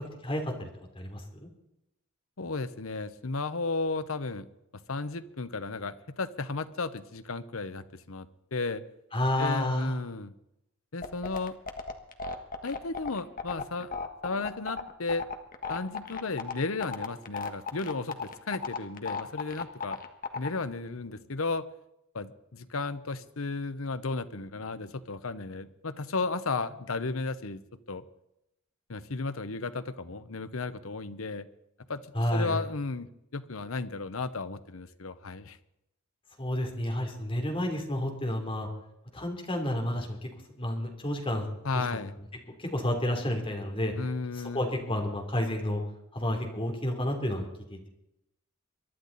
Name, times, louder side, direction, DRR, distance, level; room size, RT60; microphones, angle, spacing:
voice 1, 0.2-0.7 0.9-1.5 9.1-9.9 32.1-32.6 36.4-38.7 39.1-40.3 40.6-41.5 42.6-43.9 44.3-45.8 46.1-47.9, left 1 dB, 25° left, 2 dB, 3.2 m, -30 dB
voice 2, 2.4-4.5 4.9-8.8 9.4-10.3 10.9-11.5 12.6-13.9 14.2-15.2 15.7-20.0 20.3-21.6 22.1-27.6 27.9-28.0 28.9-31.5 31.9-32.0 32.3-35.6 41.6-42.1 44.0-44.6, left 3 dB, 80° left, 12 dB, 1.0 m, -34 dB
sound 1, 11.0-20.5, left 5 dB, 45° left, 1.5 m, -34 dB
23.0 x 12.0 x 4.1 m, 0.84 s
head